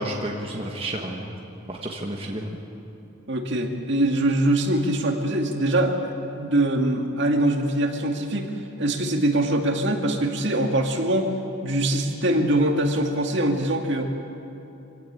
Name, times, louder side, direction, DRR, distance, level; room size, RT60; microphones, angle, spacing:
voice 1, 0.0-1.4 1.7-2.6, right 1 dB, 25° right, 0 dB, 1.4 m, -31 dB
voice 2, 3.3-8.5 8.8-11.3 11.6-14.0, right 1 dB, 55° right, 3 dB, 2.2 m, -23 dB
24.5 x 17.0 x 8.8 m, 2.9 s
head